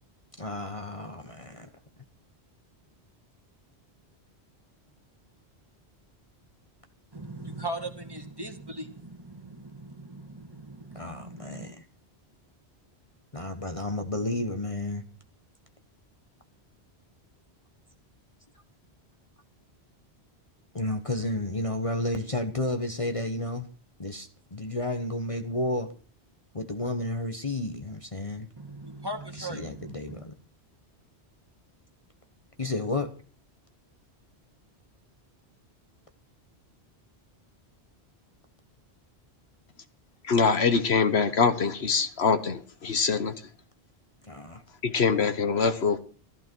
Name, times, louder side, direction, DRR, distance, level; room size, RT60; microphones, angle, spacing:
voice 1, 0.4-1.7 10.9-11.8 13.3-15.0 20.7-23.7 24.0-25.9 26.5-28.5 29.4-30.3 32.6-33.1 44.2-44.6, left 2 dB, 30° left, 1.2 m, -32 dB
voice 2, 7.1-11.7 28.6-30.2, right 2 dB, 20° right, 1.9 m, -39 dB
voice 3, 40.3-43.3 44.8-46.0, left 5 dB, 70° left, 1.4 m, -24 dB
15.5 x 14.0 x 4.6 m
omnidirectional pair, 1.1 m